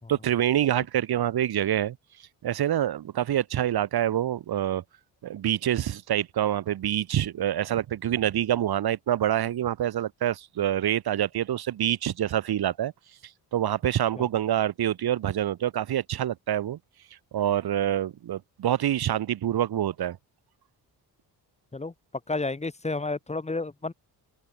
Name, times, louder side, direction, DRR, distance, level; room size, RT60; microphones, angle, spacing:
voice 1, 0.1-2.0 2.4-4.8 5.2-12.9 13.5-16.8 17.3-20.2, right 11 dB, 65° right, 3.0 m, -26 dB
voice 2, 22.3-23.9, left 3 dB, 15° left, 4.5 m, -31 dB
open air
wide cardioid pair, 160°, 40 cm